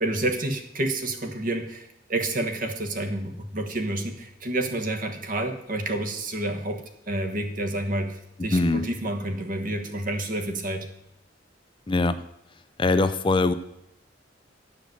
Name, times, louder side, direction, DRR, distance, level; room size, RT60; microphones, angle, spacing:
voice 1, 0.0-10.9, right 1 dB, 45° right, 6 dB, 1.3 m, -29 dB
voice 2, 8.5-8.8 11.9-12.2 12.8-13.5, left 2 dB, 25° left, 11 dB, 0.4 m, -22 dB
10.5 x 5.1 x 7.8 m, 0.80 s
head